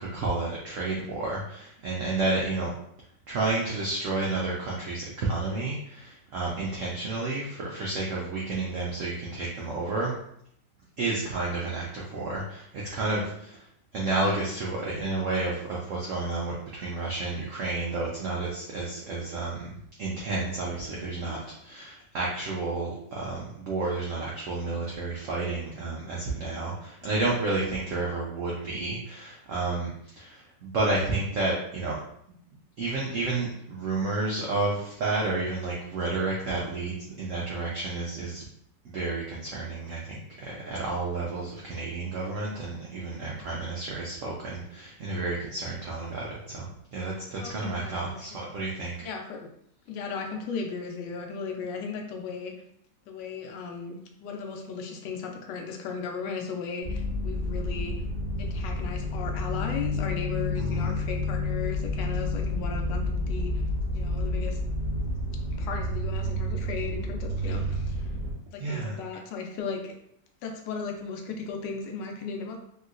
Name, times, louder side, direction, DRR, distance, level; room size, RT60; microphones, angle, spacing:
voice 1, 0.0-2.7 3.3-10.1 11.0-13.6 13.9-19.7 20.0-32.0 32.8-38.4 38.8-48.9 60.5-60.9 68.6-69.0, right 3 dB, 85° right, -4 dB, 0.6 m, -31 dB
voice 2, 26.3-26.6 43.3-43.6 47.4-48.1 49.0-49.5 49.9-52.5 53.1-57.9 58.4-63.6 63.9-64.6 65.6-68.1 68.5-69.9 70.4-72.6, left 5 dB, 75° left, 3 dB, 1.2 m, -36 dB
sound 1, 56.8-68.3, left 1 dB, 40° right, 0.9 m, -30 dB
3.0 x 2.8 x 2.4 m, 0.71 s
omnidirectional pair, 2.0 m